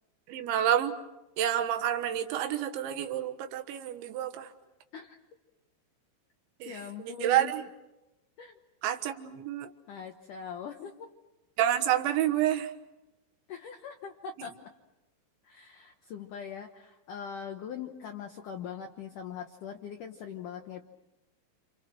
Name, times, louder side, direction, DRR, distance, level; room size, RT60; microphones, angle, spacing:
voice 1, 0.3-1.0 1.4-4.5 6.6-6.7 7.0-7.6 8.8-9.7 11.6-12.7 14.4-14.5, right 11 dB, 75° right, 8 dB, 3.6 m, -28 dB
voice 2, 6.7-7.5 8.4-8.6 9.9-11.1 13.5-14.7 15.4-20.9, left 7 dB, 75° left, 5 dB, 1.9 m, -41 dB
29.0 x 29.0 x 6.2 m, 0.98 s
omnidirectional pair, 5.4 m